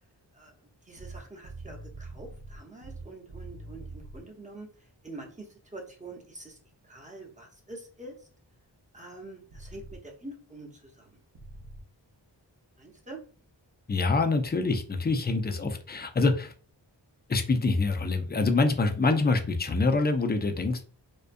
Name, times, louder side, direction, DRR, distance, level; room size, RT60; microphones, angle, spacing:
voice 1, 0.9-4.7 5.0-6.6 6.8-8.1 8.9-11.2 12.8-13.2 15.4-15.5, right 2 dB, 15° right, 0 dB, 0.8 m, -45 dB
sound 1, 1.0-4.2 9.5-10.0 11.3-11.8, right 2 dB, 75° right, 0.8 m, -44 dB
voice 2, 13.9-16.5 17.3-20.8, left 3 dB, 25° left, 6 dB, 0.4 m, -25 dB
2.4 x 2.2 x 2.5 m, 0.40 s
wide cardioid pair, 50°, 44 cm